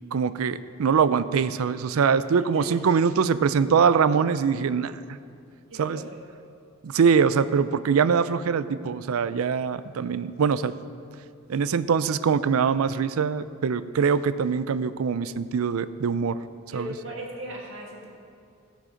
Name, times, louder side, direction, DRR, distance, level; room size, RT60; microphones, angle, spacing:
voice 1, 0.1-4.9 5.8-6.0 6.8-10.7 11.5-16.4 16.7-16.9, right 6 dB, 80° right, 15 dB, 0.4 m, -23 dB
voice 2, 5.7-6.0 16.7-18.1, equal, 65° right, -1 dB, 1.8 m, -38 dB
16.5 x 6.3 x 5.1 m, 2.4 s
head